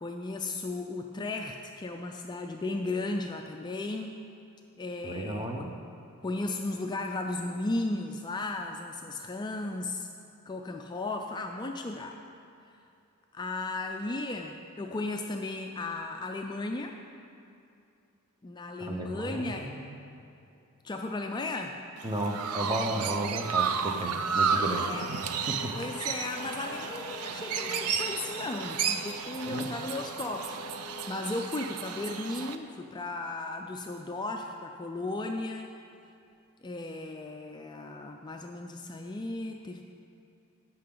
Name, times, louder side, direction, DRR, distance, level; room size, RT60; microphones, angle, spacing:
voice 1, 0.0-4.2 4.8-5.7 6.2-10.1 10.5-12.2 13.3-16.9 18.4-19.7 20.8-21.8 24.8-25.1 25.7-30.6 31.1-35.7 36.6-39.8, left 2 dB, 20° left, 3 dB, 0.3 m, -35 dB
voice 2, 5.0-5.7 18.8-19.9 22.0-24.9 25.5-25.7 29.4-29.7, right 1 dB, 20° right, 2 dB, 0.8 m, -34 dB
Chirp tweet, 22.0-32.6, right 6 dB, 85° right, 0.5 m, -32 dB
sound 1, 24.2-31.1, left 2 dB, 55° left, 0.7 m, -45 dB
15.5 x 5.7 x 3.8 m, 2.6 s
head